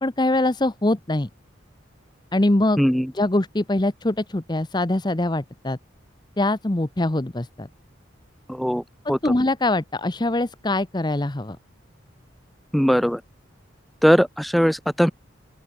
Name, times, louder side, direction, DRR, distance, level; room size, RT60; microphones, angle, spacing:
voice 1, 0.0-1.3 2.3-2.8 3.1-5.8 6.4-7.7 9.0-11.6, left 1 dB, 20° left, 0.8 m, -23 dB
voice 2, 2.8-3.1 8.5-8.8 9.1-9.3 12.7-13.2 14.0-15.1, equal, ahead, 1.1 m, -19 dB
open air
head